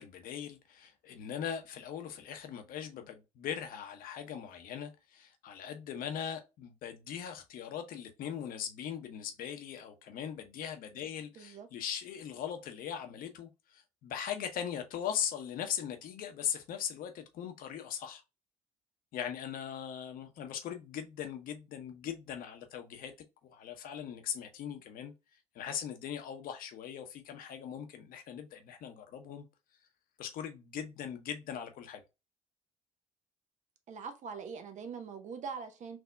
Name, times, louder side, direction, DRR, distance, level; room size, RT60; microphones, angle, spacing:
voice 1, 0.0-18.2 19.1-23.1 23.4-25.1 25.5-29.5 30.2-32.0, left 9 dB, 55° left, 0.8 m, -40 dB
voice 2, 11.4-11.7 33.9-36.0, right 5 dB, 45° right, 0.8 m, -42 dB
6.0 x 2.6 x 2.3 m
hypercardioid pair, 55°, 17 cm